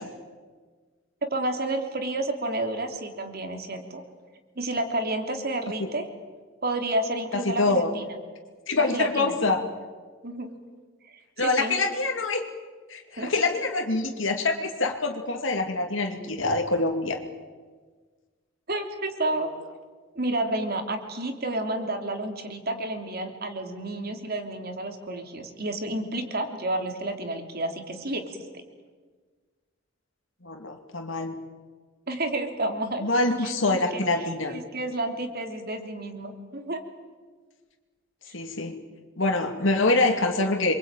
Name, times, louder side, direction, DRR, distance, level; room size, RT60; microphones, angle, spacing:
voice 1, 1.2-4.0 4.5-6.1 6.6-8.1 8.8-9.3 10.2-10.5 11.0-11.8 13.2-13.3 18.7-19.5 20.1-28.4 32.1-33.1 33.4-34.0 34.5-36.8, right 1 dB, 50° right, 5 dB, 3.3 m, -30 dB
voice 2, 7.3-7.9 8.7-9.7 11.4-12.5 12.9-17.2 30.4-31.4 33.0-34.5 38.3-38.7 39.2-40.7, left 2 dB, 70° left, 3 dB, 2.6 m, -25 dB
27.0 x 23.5 x 9.1 m, 1.5 s
head